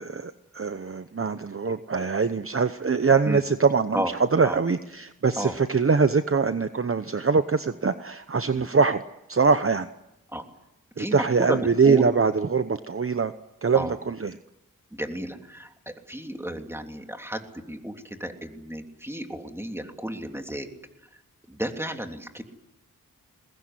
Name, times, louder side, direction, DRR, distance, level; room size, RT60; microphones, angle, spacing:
voice 1, 0.0-9.0 9.3-9.9 11.0-13.3 13.6-14.4, right 5 dB, 40° right, 10 dB, 0.9 m, -23 dB
voice 2, 11.0-12.1 13.7-13.9 14.9-20.7 21.5-22.4, equal, 5° right, 4 dB, 3.2 m, -33 dB
22.5 x 20.0 x 9.8 m, 0.90 s
wide cardioid pair, 65°, 34 cm